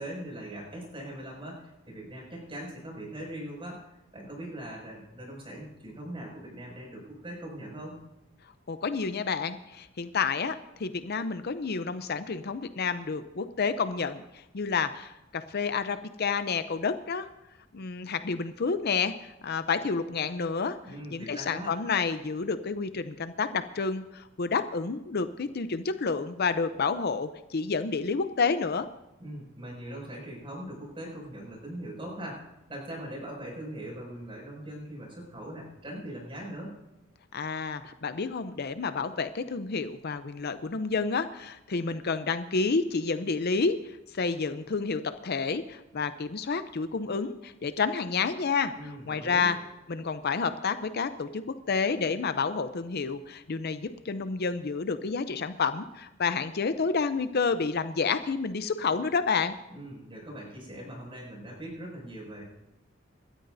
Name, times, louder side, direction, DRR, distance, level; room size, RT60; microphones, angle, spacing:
voice 1, 0.0-8.0 20.8-21.8 29.2-36.8 48.8-49.5 59.7-62.4, right 1 dB, 25° right, -2 dB, 6.3 m, -41 dB
voice 2, 8.7-17.3 17.7-19.1 19.4-20.8 21.1-28.9 37.3-43.8 44.1-49.6 49.9-59.5, left 5 dB, 50° left, 11 dB, 0.6 m, -29 dB
28.0 x 13.0 x 2.7 m, 0.96 s
head